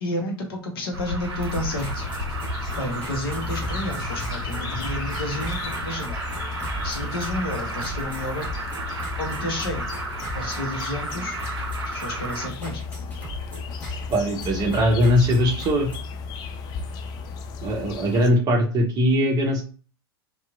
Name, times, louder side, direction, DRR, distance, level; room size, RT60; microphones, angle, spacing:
voice 1, 0.0-2.0 2.8-6.2 6.8-8.5 9.2-9.9 10.3-11.4 11.8-12.8, left 1 dB, 60° left, 2 dB, 0.8 m, -31 dB
Alarm, 0.9-12.5, right 2 dB, 75° right, 0.7 m, -32 dB
sound 1, 1.3-16.0, equal, 15° left, 1.3 m, -38 dB
sound 2, 1.7-18.3, left 5 dB, 30° left, 0.3 m, -35 dB
voice 2, 14.1-15.9 17.6-19.6, equal, 30° right, 2 dB, 0.7 m, -20 dB
2.8 x 2.3 x 2.3 m, 0.37 s
figure-of-eight pair, 90°, 13 cm